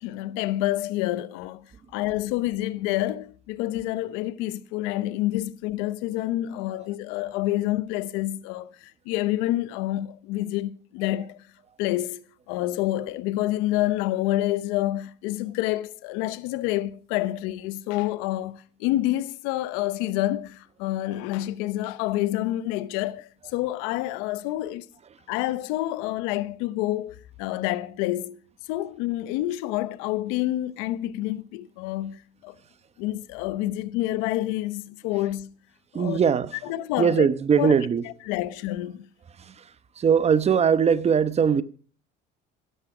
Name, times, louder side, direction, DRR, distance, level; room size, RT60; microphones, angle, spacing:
voice 1, 0.0-11.4 11.8-24.9 25.3-28.4 28.7-32.5 33.0-35.5 35.9-36.2 36.7-37.3 37.6-37.7 38.3-39.1, left 15 dB, 90° left, 1.0 m, -28 dB
voice 2, 35.9-36.5 37.0-38.0 39.4-39.7 40.0-41.6, right 7 dB, 30° right, 1.0 m, -21 dB
15.5 x 12.5 x 5.0 m
cardioid pair, 110°, 20 cm